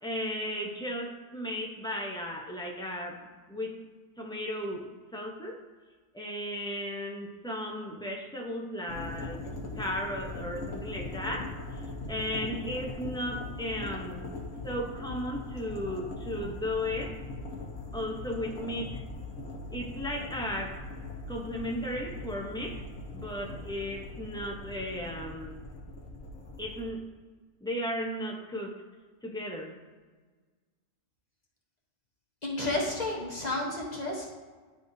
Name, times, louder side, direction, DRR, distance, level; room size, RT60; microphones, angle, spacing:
voice 1, 0.0-3.8 4.2-5.6 6.1-9.4 9.8-11.5 12.1-14.2 14.6-17.2 17.9-19.0 19.7-20.8 21.3-25.6 26.6-27.0 27.6-28.8 29.2-29.8, equal, 5° left, -1 dB, 0.3 m, -35 dB
sound 1, 8.9-26.9, left 2 dB, 80° left, 1.3 m, -40 dB
voice 2, 32.4-34.2, left 2 dB, 35° left, -3 dB, 1.0 m, -31 dB
10.5 x 3.5 x 2.7 m, 1.4 s
omnidirectional pair, 1.4 m